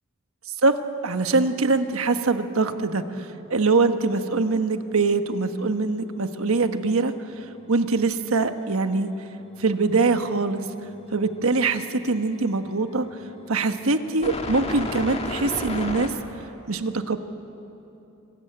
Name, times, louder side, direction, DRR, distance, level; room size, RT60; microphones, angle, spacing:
voice 1, 0.6-9.1 9.6-10.7 11.1-13.1 13.5-16.2 16.7-17.2, right 3 dB, 75° right, 8 dB, 1.3 m, -23 dB
sound 1, 8.1-8.2 9.5-10.4 10.6-16.1, left 2 dB, 30° left, 1.8 m, -35 dB
25.5 x 20.5 x 8.8 m, 2.9 s
head